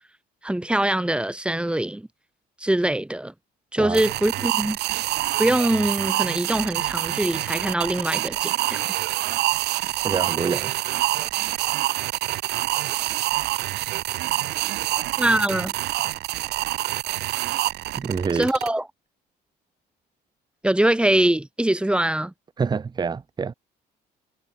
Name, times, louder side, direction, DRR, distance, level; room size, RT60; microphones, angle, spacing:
voice 1, 0.4-2.1 2.6-3.3 3.7-4.8 5.4-8.8 15.2-15.7 18.3-18.8 20.6-22.3, right 1 dB, 5° right, 3.8 m, -23 dB
sound 1, 3.9-18.7, right 17 dB, 80° right, 2.4 m, -26 dB
voice 2, 10.0-10.7 18.0-18.6 22.6-23.5, right 5 dB, 25° right, 1.0 m, -26 dB
cardioid pair, 110°, 17 cm